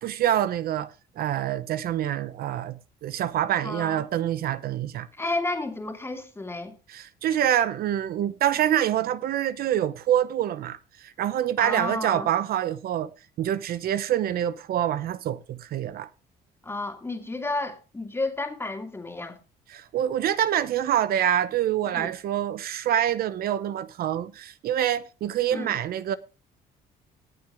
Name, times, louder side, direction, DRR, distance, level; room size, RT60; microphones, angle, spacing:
voice 1, 0.0-5.1 6.9-13.1 13.4-16.1 19.7-26.2, right 11 dB, 65° right, 0.8 m, -26 dB
voice 2, 3.6-4.0 5.2-6.7 11.6-12.3 16.6-19.4 21.9-22.1 25.5-25.8, left 2 dB, 15° left, 2.6 m, -32 dB
18.5 x 7.6 x 3.5 m
cardioid pair, 110°, 17 cm